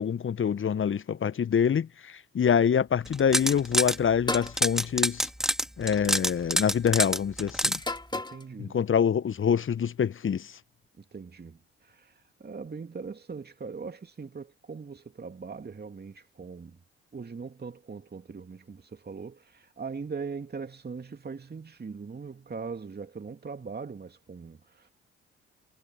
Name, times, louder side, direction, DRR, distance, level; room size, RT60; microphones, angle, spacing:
voice 1, 0.0-5.3 5.8-7.8 8.6-10.5, left 7 dB, 40° left, 1.3 m, -26 dB
sound 1, 3.1-4.0 4.3-7.8, equal, ahead, 2.3 m, -26 dB
sound 2, 4.3-4.6 5.8-6.1 7.8-8.5, left 2 dB, 15° left, 3.0 m, -33 dB
voice 2, 8.1-8.8 11.0-16.8 17.1-24.9, right 5 dB, 30° right, 2.7 m, -41 dB
figure-of-eight pair, 40°, 32 cm